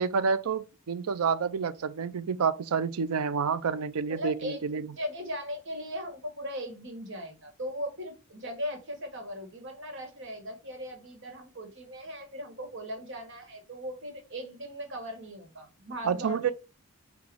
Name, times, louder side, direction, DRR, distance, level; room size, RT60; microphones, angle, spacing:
voice 1, 0.0-4.9 16.0-16.5, right 6 dB, 80° right, 0.4 m, -29 dB
voice 2, 4.1-4.6 4.9-16.5, equal, 55° right, 1.3 m, -38 dB
5.9 x 2.3 x 3.3 m
head